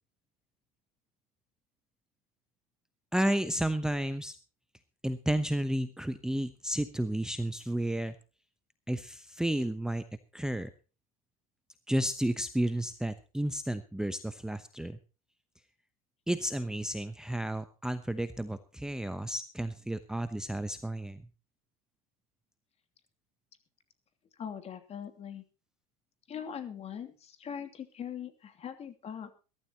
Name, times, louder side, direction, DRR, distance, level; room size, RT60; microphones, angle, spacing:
voice 1, 3.1-4.4 5.0-8.1 8.9-10.0 10.3-10.7 11.9-15.0 16.3-21.2, right 1 dB, 5° right, 11 dB, 0.9 m, -32 dB
voice 2, 24.4-25.4 26.3-29.3, left 8 dB, 35° left, 7 dB, 2.9 m, -41 dB
21.5 x 13.0 x 3.0 m, 0.33 s
hypercardioid pair, 90°, 19 cm